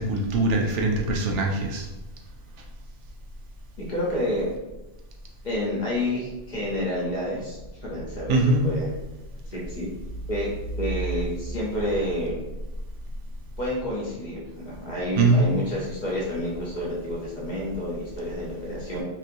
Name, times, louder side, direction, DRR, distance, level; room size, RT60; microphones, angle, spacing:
voice 1, 0.0-1.9 8.3-8.7 15.2-15.5, right 2 dB, 75° right, 1 dB, 0.9 m, -22 dB
voice 2, 3.8-4.5 5.4-8.9 9.5-9.9 10.3-10.5 10.8-12.4 13.6-19.0, left 1 dB, 45° left, -5 dB, 0.8 m, -29 dB
2.9 x 2.8 x 2.5 m, 1.0 s
omnidirectional pair, 1.2 m